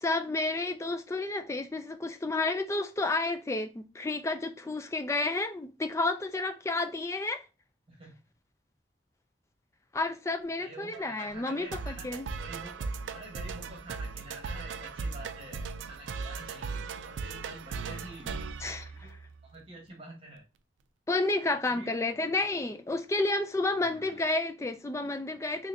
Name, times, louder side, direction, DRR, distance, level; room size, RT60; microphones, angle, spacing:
voice 1, 0.0-7.4 9.9-12.3 18.6-19.1 21.1-25.7, left 2 dB, 15° left, 0.3 m, -31 dB
voice 2, 10.6-12.1 12.4-19.2 19.4-20.4 21.5-22.2 23.7-24.3, right 1 dB, 30° right, 1.2 m, -48 dB
sound 1, 10.9-19.5, right 4 dB, 85° right, 0.4 m, -38 dB
3.9 x 3.2 x 2.6 m
head